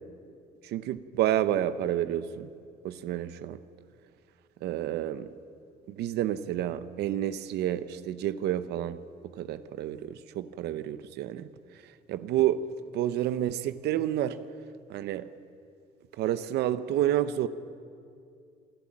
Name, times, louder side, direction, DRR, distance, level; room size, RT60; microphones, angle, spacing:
voice 1, 0.6-2.5 2.8-3.6 4.6-5.3 5.9-9.0 9.2-11.5 12.1-12.6 12.9-14.4 14.9-15.3 16.2-17.5, right 12 dB, 75° right, 12 dB, 0.9 m, -29 dB
27.0 x 11.5 x 8.8 m, 2.4 s
cardioid pair, 110°, 17 cm